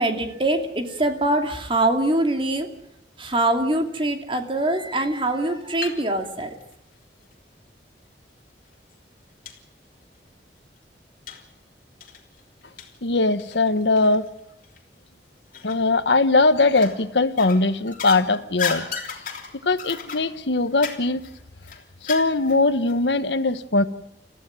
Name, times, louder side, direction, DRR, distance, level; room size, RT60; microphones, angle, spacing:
voice 1, 0.0-2.7 3.2-6.5, right 1 dB, 30° right, 5 dB, 2.6 m, -23 dB
sound 1, 5.3-6.0 6.4-7.4 8.2-8.3 8.7-8.8 9.5-9.6 10.0-10.1 11.3-11.5 12.0-14.3 14.6-14.8 15.5-16.1 16.6-17.0 17.4-22.6 22.9-23.0, left 6 dB, 50° left, 3.3 m, -35 dB
voice 2, 13.0-14.3 15.6-18.9 19.6-21.2 22.0-23.8, left 3 dB, 80° left, 12 dB, 1.1 m, -20 dB
29.0 x 15.0 x 7.7 m, 0.80 s
head